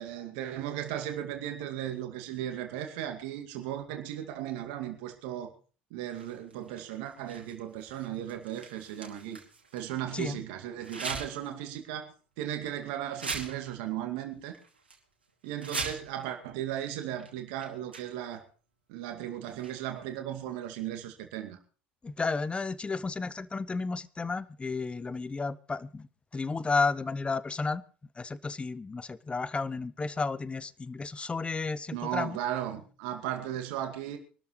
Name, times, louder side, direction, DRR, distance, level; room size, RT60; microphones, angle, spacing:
voice 1, 0.0-5.5 5.9-9.4 9.7-14.5 15.4-18.4 18.9-21.6 31.9-34.2, right 11 dB, 65° right, 2.2 m, -36 dB
sound 1, 6.1-10.0 10.8-11.5 11.9-12.0 12.7-12.8 13.1-14.2 14.5-15.0 15.4-16.3 17.2-17.3 17.6-18.4 19.4-20.0, right 4 dB, 90° right, 2.6 m, -41 dB
voice 2, 22.0-27.8 28.2-32.4, left 4 dB, 20° left, 0.9 m, -32 dB
24.5 x 13.0 x 3.2 m
figure-of-eight pair, 65°, 5 cm